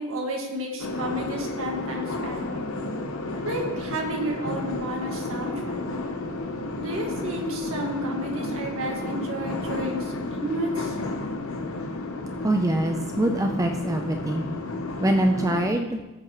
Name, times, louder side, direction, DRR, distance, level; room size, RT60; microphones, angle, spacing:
voice 1, 0.0-2.7 3.4-5.8 6.8-11.0, right 1 dB, 85° right, 1 dB, 1.8 m, -31 dB
sound 1, 0.8-15.7, left 2 dB, 85° left, 0.9 m, -32 dB
voice 2, 12.4-14.5 15.0-16.0, right 1 dB, 15° right, 4 dB, 0.5 m, -24 dB
14.0 x 7.7 x 3.1 m, 1.1 s
head